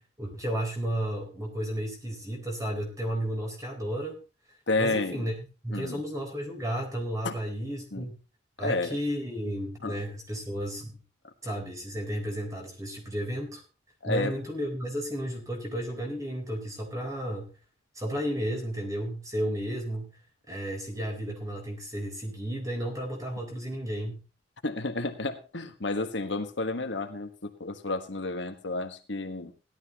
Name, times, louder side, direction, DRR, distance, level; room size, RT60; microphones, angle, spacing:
voice 1, 0.2-4.2 4.8-8.1 8.6-10.9 11.4-13.6 14.0-17.5 18.0-20.1 20.5-24.2, equal, 20° right, 2 dB, 4.0 m, -33 dB
voice 2, 4.7-5.3 5.7-6.0 7.2-7.3 7.9-8.1 8.6-9.0 9.8-10.0 14.0-14.3 24.6-29.5, left 2 dB, 70° left, 6 dB, 1.5 m, -31 dB
17.0 x 12.5 x 3.0 m, 0.32 s
head